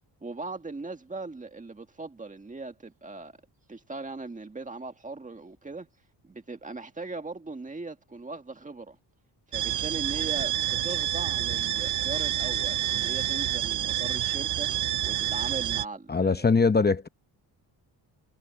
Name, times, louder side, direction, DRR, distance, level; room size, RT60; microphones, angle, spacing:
voice 1, 0.2-3.3 3.7-5.9 6.2-9.0 9.5-14.7 15.1-16.5, right 3 dB, 15° right, 1.8 m, -39 dB
sound 1, 9.5-15.9, right 12 dB, 45° right, 0.4 m, -28 dB
voice 2, 16.1-17.1, left 4 dB, 20° left, 0.9 m, -22 dB
wide cardioid pair, 145°, 45 cm